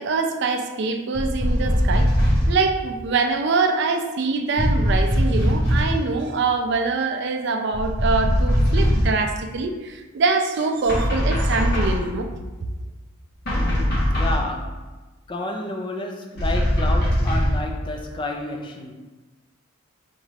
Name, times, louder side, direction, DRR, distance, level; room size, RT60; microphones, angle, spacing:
voice 1, 0.0-2.1 2.5-12.4, right 4 dB, 55° right, 5 dB, 0.4 m, -24 dB
sound 1, 1.1-2.6 4.6-6.0 7.7-9.2 10.9-12.1 13.4-14.5 16.4-17.7, equal, 50° left, 1.0 m, -20 dB
voice 2, 13.5-14.7 15.3-18.9, left 2 dB, 20° left, 2 dB, 0.3 m, -30 dB
5.2 x 2.4 x 3.3 m, 1.2 s
head